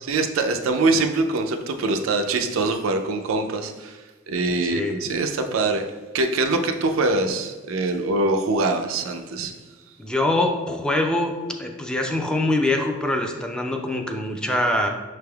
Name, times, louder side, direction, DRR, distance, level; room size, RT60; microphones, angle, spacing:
voice 1, 0.0-4.0 4.3-5.9 6.1-9.5, right 3 dB, 85° right, 5 dB, 0.4 m, -23 dB
voice 2, 4.6-4.9 10.0-11.3 11.6-14.9, left 1 dB, 5° left, 3 dB, 0.3 m, -24 dB
6.0 x 3.3 x 2.3 m, 1.3 s
head